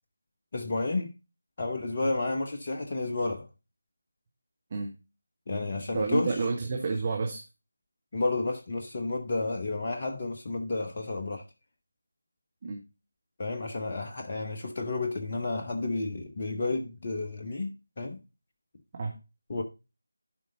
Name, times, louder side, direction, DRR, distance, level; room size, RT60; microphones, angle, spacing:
voice 1, 0.5-1.1 1.6-3.5 5.5-6.3 8.1-11.4 13.4-18.2 19.5-19.6, left 2 dB, 35° left, 0.9 m, -31 dB
voice 2, 5.9-7.4 12.6-12.8 18.9-19.1, right 4 dB, 30° right, 1.5 m, -30 dB
12.0 x 5.1 x 3.8 m
figure-of-eight pair, 160°, 0 cm